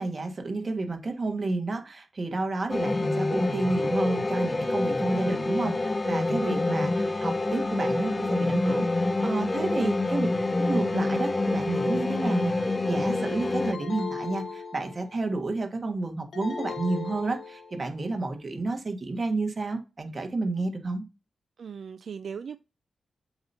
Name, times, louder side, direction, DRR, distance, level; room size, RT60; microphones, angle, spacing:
voice 1, 0.0-10.3 10.6-12.5 12.9-21.0, right 2 dB, 45° right, 1.5 m, -30 dB
sound 1, 2.7-13.7, left 2 dB, 25° left, 0.6 m, -27 dB
voice 2, 9.5-9.9 21.6-22.6, right 6 dB, 70° right, 0.3 m, -38 dB
sound 2, 13.7-15.3 16.3-17.9, left 5 dB, 70° left, 1.2 m, -37 dB
7.7 x 2.9 x 5.5 m
cardioid pair, 75°, 0 cm